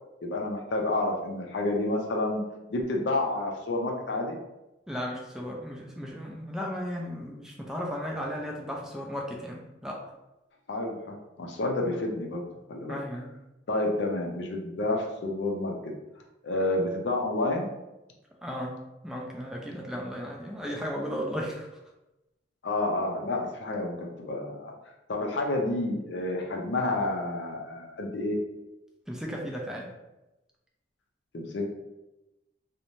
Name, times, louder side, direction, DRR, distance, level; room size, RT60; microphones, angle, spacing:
voice 1, 0.2-2.4 2.7-4.4 10.7-12.4 12.7-13.0 13.7-15.7 16.4-17.7 22.6-24.7 25.1-28.4 31.3-31.7, left 2 dB, 70° left, 1 dB, 0.5 m, -29 dB
voice 2, 4.9-10.0 12.9-13.3 18.4-18.8 19.0-21.7 29.1-29.9, equal, 5° right, -2 dB, 0.3 m, -35 dB
2.6 x 2.1 x 3.0 m, 0.98 s
head